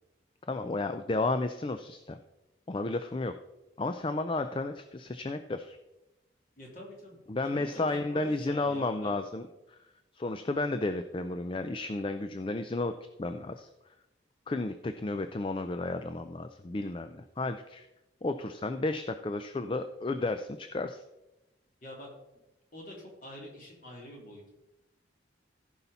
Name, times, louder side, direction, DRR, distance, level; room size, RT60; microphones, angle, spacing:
voice 1, 0.5-2.2 2.7-3.3 3.8-5.8 7.3-9.8 10.1-13.7 14.5-17.9 18.2-21.0, left 2 dB, 25° left, 8 dB, 0.4 m, -32 dB
voice 2, 6.6-7.7 8.1-9.2 21.8-22.1 22.7-24.5, left 1 dB, 45° left, -2 dB, 3.0 m, -46 dB
15.0 x 5.6 x 4.1 m, 0.97 s
head